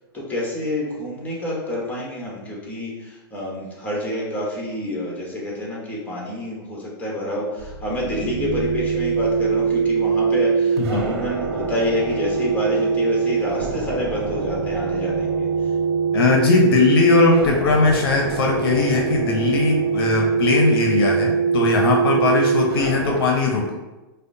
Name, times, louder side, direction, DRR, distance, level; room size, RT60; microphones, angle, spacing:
voice 1, 0.1-15.7, left 1 dB, 10° left, -4 dB, 1.2 m, -28 dB
sound 1, 7.6-23.2, right 5 dB, 90° right, 0.8 m, -23 dB
voice 2, 16.1-23.8, left 4 dB, 70° left, 1 dB, 0.6 m, -19 dB
4.9 x 2.1 x 2.6 m, 1.1 s
hypercardioid pair, 120°, 13 cm